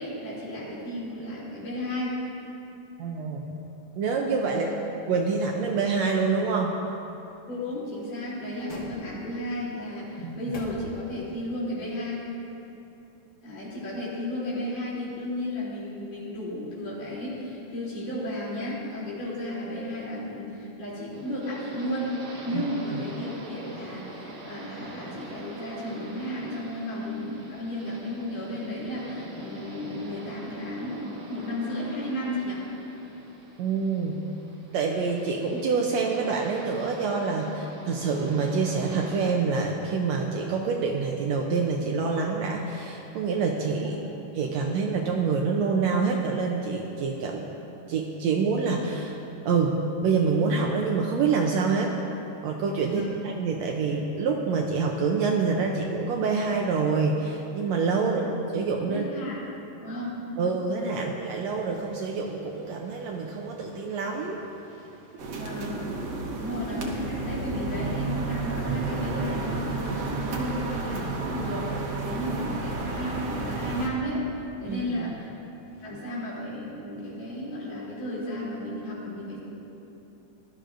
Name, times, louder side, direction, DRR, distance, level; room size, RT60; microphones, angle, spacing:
voice 1, 0.0-2.2 4.5-4.7 7.5-12.2 13.4-22.1 22.4-31.0 31.3-32.6 43.8-44.1 52.8-53.2 58.0-58.3 58.9-59.4 59.8-60.6 65.3-65.9 66.3-74.3 74.6-75.3 75.8-79.4, left 1 dB, 80° left, -8 dB, 4.8 m, -33 dB
voice 2, 3.0-3.5 4.0-4.7 5.1-6.7 10.2-10.4 22.5-22.6 22.9-23.0 33.6-34.2 34.7-44.0 44.3-47.5 47.9-49.2 49.4-49.8 50.0-51.9 52.4-58.2 58.5-59.0 60.4-65.3 74.7-75.1, right 4 dB, 75° right, 1 dB, 1.7 m, -26 dB
sound 1, 7.8-9.5 10.0-11.3 11.7-11.8, equal, 50° left, 1.3 m, -44 dB
sound 2, 21.1-39.3, right 1 dB, 40° right, 1.3 m, -44 dB
sound 3, 65.2-73.9, right 3 dB, 60° right, 2.0 m, -31 dB
18.0 x 12.5 x 2.6 m, 2.9 s
omnidirectional pair, 3.7 m